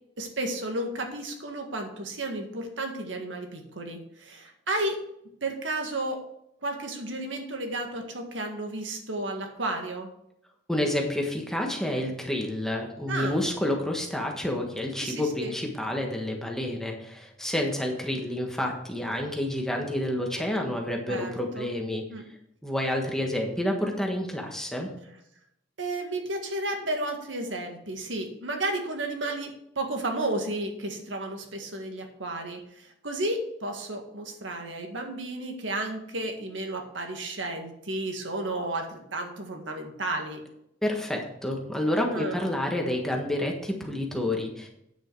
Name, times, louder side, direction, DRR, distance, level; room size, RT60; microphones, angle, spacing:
voice 1, 0.2-5.0 5.4-6.2 6.6-10.1 13.1-13.4 15.0-15.6 21.1-21.7 22.1-22.2 25.8-40.4 42.1-42.4, right 2 dB, 85° right, 3 dB, 1.8 m, -32 dB
voice 2, 10.7-22.0 22.6-24.9 40.8-44.7, left 1 dB, 5° left, 0 dB, 1.5 m, -29 dB
9.1 x 7.7 x 4.7 m, 0.77 s
head